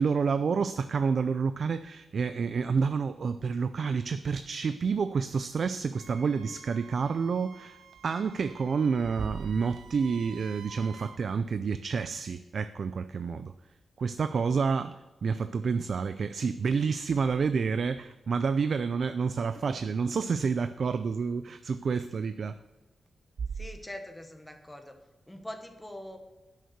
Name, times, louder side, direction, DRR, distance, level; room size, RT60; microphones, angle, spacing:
voice 1, 0.0-13.5 14.0-22.6, right 5 dB, 55° right, 0.3 m, -29 dB
Wind instrument woodwind instrument, 5.9-11.2, right 6 dB, 90° right, 0.8 m, -51 dB
voice 2, 23.5-25.0 25.3-26.2, left 1 dB, 5° left, 1.1 m, -43 dB
11.0 x 6.5 x 6.6 m
wide cardioid pair, 170°, 0 cm